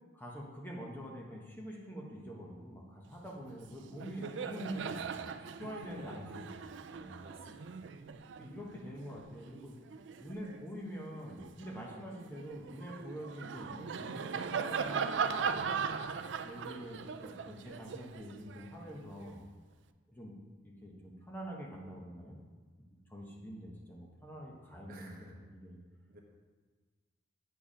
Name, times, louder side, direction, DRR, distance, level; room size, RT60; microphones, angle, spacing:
voice 1, 0.1-6.7 7.0-7.2 8.4-9.7 10.2-15.7 16.4-19.4 20.1-20.3 20.6-22.4 22.8-22.9 23.1-25.8, equal, 10° left, -3 dB, 1.0 m, -46 dB
Laughter, 3.5-3.7 3.9-10.6 11.1-19.3, right 6 dB, 60° right, 0.4 m, -39 dB
voice 2, 5.8-6.3 7.2-8.0 24.9-25.4 26.1-26.2, right 1 dB, 45° right, 0 dB, 1.1 m, -54 dB
8.8 x 4.7 x 5.0 m, 1.5 s
head